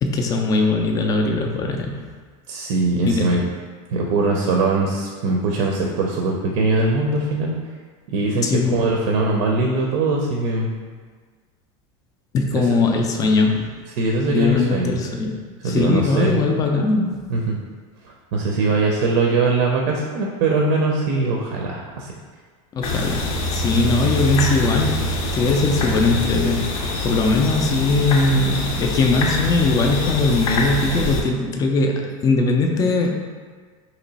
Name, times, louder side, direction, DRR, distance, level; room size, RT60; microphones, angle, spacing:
voice 1, 0.0-2.1 3.0-3.4 8.4-8.8 12.3-13.7 14.3-15.4 15.6-17.2 22.7-33.1, left 3 dB, 20° left, 2 dB, 0.3 m, -20 dB
voice 2, 2.5-3.4 3.9-7.5 8.1-10.7 14.0-14.9 15.6-16.5 17.3-17.6 18.3-22.1 23.7-23.9, right 3 dB, 60° right, -1 dB, 0.5 m, -21 dB
sound 1, 22.8-31.2, left 1 dB, 85° left, 0.7 m, -24 dB
3.0 x 2.9 x 4.0 m, 1.5 s
supercardioid pair, 155°, 18 cm